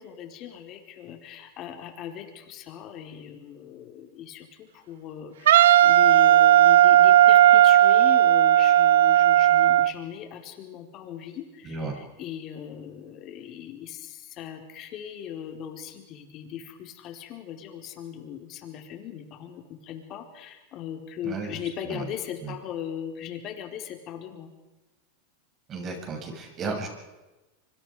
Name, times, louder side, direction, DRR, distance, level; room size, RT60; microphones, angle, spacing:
voice 1, 0.0-24.5, left 9 dB, 45° left, 4 dB, 4.6 m, -39 dB
Wind instrument woodwind instrument, 5.5-9.9, right 12 dB, 80° right, 0.8 m, -16 dB
voice 2, 21.2-21.6 21.8-22.1 22.4-22.5 25.7-26.9, right 4 dB, 30° right, 2 dB, 7.5 m, -33 dB
25.5 x 25.5 x 5.1 m, 1.1 s
hypercardioid pair, 115°, 0 cm